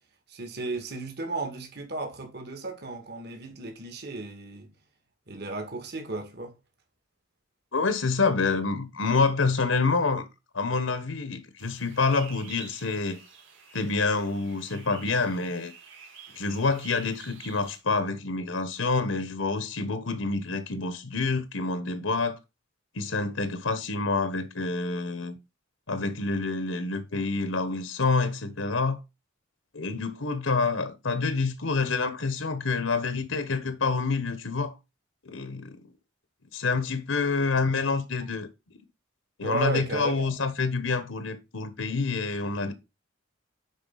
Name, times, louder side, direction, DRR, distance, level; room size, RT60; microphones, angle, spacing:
voice 1, 0.3-4.7 5.3-6.5 38.2-38.3 39.4-40.3, right 3 dB, 50° right, 2.3 m, -34 dB
voice 2, 7.7-10.3 10.5-13.2 13.7-15.7 16.3-22.4 22.9-25.4 25.9-29.0 29.7-34.8 35.2-35.8 36.5-38.5 39.4-42.7, left 4 dB, 80° left, 1.2 m, -27 dB
sound 1, 11.6-17.8, right 6 dB, 90° right, 3.9 m, -49 dB
10.5 x 4.5 x 4.0 m
head